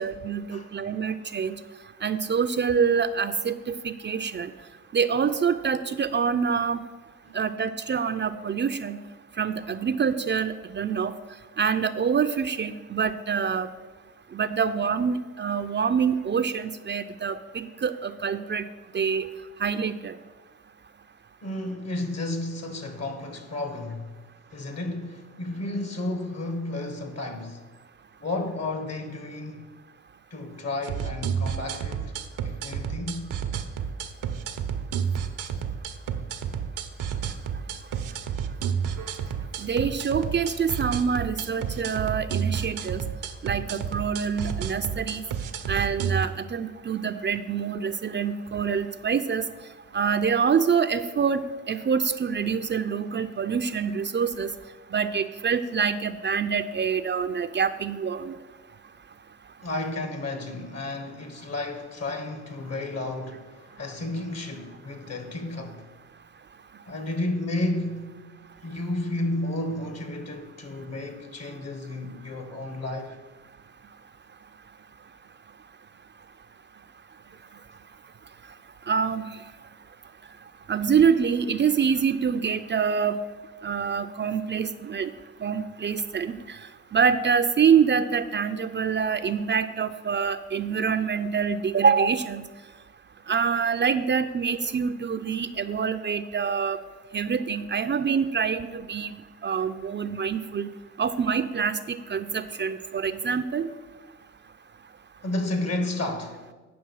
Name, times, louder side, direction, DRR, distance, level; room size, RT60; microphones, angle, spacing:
voice 1, 0.0-1.6 2.0-4.5 4.9-6.8 7.3-9.0 9.4-11.1 11.6-13.7 14.3-18.6 18.9-19.3 19.6-20.1 39.6-43.0 43.4-45.2 45.7-49.5 49.9-54.5 54.9-58.3 78.9-79.2 80.7-83.2 83.6-85.1 85.4-86.6 86.9-92.4 93.3-96.8 97.1-99.1 99.4-100.7 101.0-103.7, right 6 dB, 35° right, 0.5 m, -26 dB
voice 2, 21.4-24.1 24.5-27.6 28.2-29.7 30.3-32.1 32.4-33.4 59.6-65.9 66.9-68.2 68.6-73.2 105.2-106.5, left 2 dB, 50° left, 1.5 m, -32 dB
sound 1, 30.8-46.3, right 7 dB, 80° right, 0.7 m, -30 dB
8.7 x 5.7 x 5.5 m
supercardioid pair, 50°, 32 cm